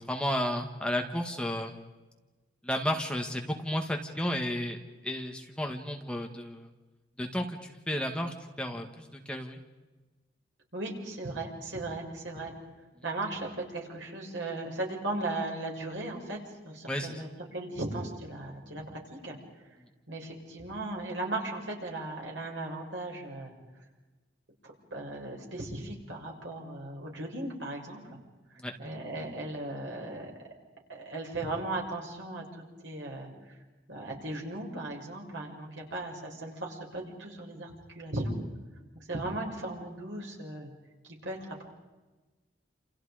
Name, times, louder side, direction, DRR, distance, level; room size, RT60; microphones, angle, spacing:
voice 1, 0.1-1.8 2.6-4.8 5.0-6.7 7.2-9.6 16.9-17.2 28.6-28.7, equal, 5° left, 2 dB, 1.8 m, -32 dB
voice 2, 10.7-12.5 13.0-16.4 16.6-19.4 20.1-23.5 24.9-28.0 28.8-30.3 30.9-33.6 33.9-38.4 38.9-40.7 41.2-41.4, right 2 dB, 90° right, -1 dB, 6.8 m, -37 dB
29.5 x 28.0 x 5.1 m, 1.2 s
head